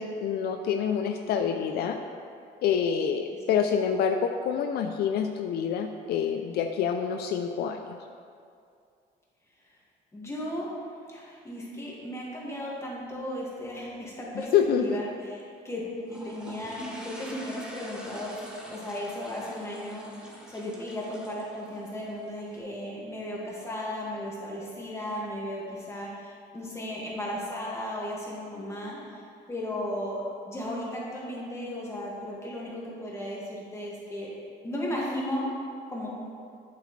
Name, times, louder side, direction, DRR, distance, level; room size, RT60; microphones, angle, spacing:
voice 1, 0.0-2.0 2.6-8.0 14.3-15.0, left 7 dB, 70° left, 6 dB, 0.5 m, -27 dB
voice 2, 10.1-10.7 11.1-14.5 14.8-29.2 29.5-34.3 34.6-35.5 35.9-36.1, left 1 dB, 15° left, -5 dB, 2.1 m, -35 dB
sound 1, 16.0-22.6, right 1 dB, 5° right, 1.2 m, -45 dB
8.4 x 7.7 x 3.3 m, 2.4 s
cardioid pair, 110°, 17 cm